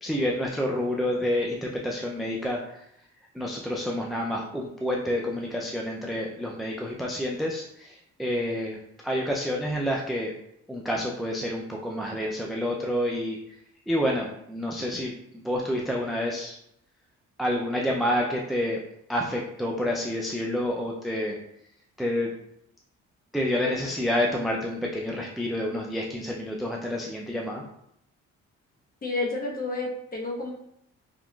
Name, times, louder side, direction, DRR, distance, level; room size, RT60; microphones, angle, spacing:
voice 1, 0.0-2.8 3.3-8.8 9.0-10.3 10.7-13.4 13.9-16.6 17.4-18.8 19.1-21.4 22.0-22.4 23.3-27.6, left 1 dB, ahead, -2 dB, 0.4 m, -28 dB
voice 2, 29.0-30.5, left 2 dB, 30° left, -1 dB, 0.9 m, -30 dB
3.8 x 2.9 x 2.3 m, 0.76 s
cardioid pair, 90°, 30 cm